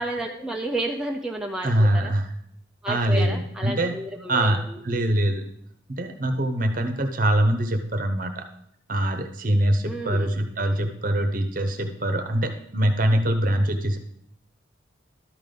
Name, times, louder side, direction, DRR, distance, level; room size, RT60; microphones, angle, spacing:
voice 1, 0.0-2.1 2.8-4.8 9.8-10.3, right 1 dB, 5° right, 0 dB, 0.5 m, -31 dB
voice 2, 1.6-2.3 2.9-3.9 4.3-5.5 5.9-8.4 8.9-14.0, right 1 dB, 45° right, 7 dB, 0.9 m, -23 dB
12.0 x 5.4 x 3.8 m, 0.71 s
head